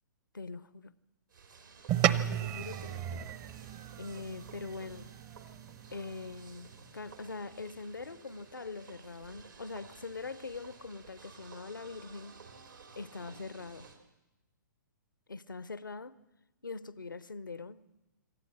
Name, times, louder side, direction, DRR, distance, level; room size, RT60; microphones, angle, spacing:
voice 1, 0.3-0.9 2.2-3.3 4.0-5.1 5.9-12.4 12.9-13.9 15.3-16.2 16.6-17.9, left 4 dB, 80° left, 0.8 m, -43 dB
sound 1, 1.3-14.0, right 5 dB, 75° right, 3.3 m, -54 dB
sound 2, 1.9-6.5, right 11 dB, 30° right, 0.8 m, -34 dB
26.0 x 14.0 x 7.7 m
figure-of-eight pair, 120°, 11 cm